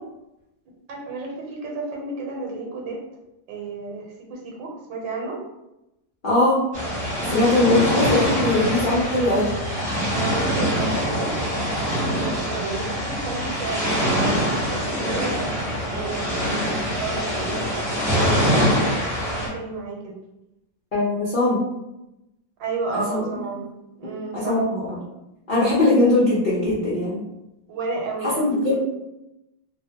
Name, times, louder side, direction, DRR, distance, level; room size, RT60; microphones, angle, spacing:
voice 1, 0.9-3.0 3.5-5.4 10.1-20.1 22.6-23.7 24.0-24.6 27.7-28.6, right 3 dB, 75° right, -1 dB, 1.4 m, -32 dB
voice 2, 6.2-6.6 7.2-9.5 20.9-21.6 22.9-23.2 24.3-25.0 25.5-27.2 28.2-28.8, left 2 dB, 60° left, -10 dB, 0.5 m, -20 dB
sound 1, 6.7-19.5, equal, 5° right, 0.8 m, -24 dB
3.2 x 2.1 x 2.8 m, 0.92 s
omnidirectional pair, 2.1 m